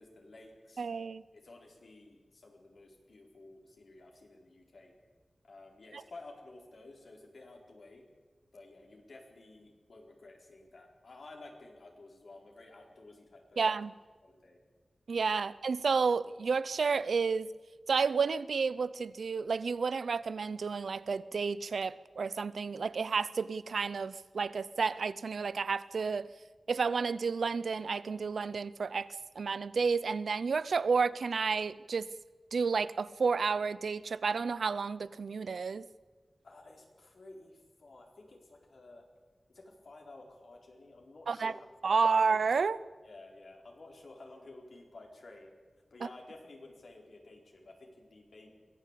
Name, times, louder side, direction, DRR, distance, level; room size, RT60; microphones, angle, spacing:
voice 1, 0.0-0.9 1.3-4.9 5.4-8.1 8.5-13.6 14.2-14.6 15.4-15.5 36.4-39.0 39.5-42.0 43.0-45.5 45.9-48.5, left 2 dB, 75° left, 0 dB, 4.5 m, -53 dB
voice 2, 0.8-1.2 5.9-6.0 13.6-13.9 15.1-17.5 17.9-26.3 26.7-29.1 29.4-32.1 32.5-35.8 41.3-41.5 41.8-42.8, right 5 dB, 90° right, 18 dB, 0.6 m, -31 dB
23.0 x 16.0 x 8.4 m, 1.4 s
wide cardioid pair, 65°, 0 cm